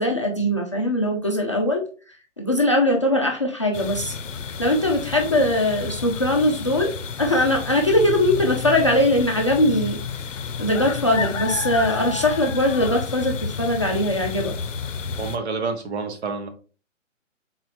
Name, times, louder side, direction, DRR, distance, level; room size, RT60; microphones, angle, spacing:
voice 1, 0.0-1.8 2.4-4.1 4.6-6.9 7.2-10.0 10.6-14.5, left 1 dB, 25° left, 0 dB, 0.4 m, -21 dB
sound 1, 3.7-15.4, left 6 dB, 75° left, 0.6 m, -31 dB
voice 2, 15.2-16.5, right 4 dB, 60° right, 6 dB, 1.0 m, -28 dB
3.9 x 3.1 x 3.2 m, 0.37 s
figure-of-eight pair, 130°, 38 cm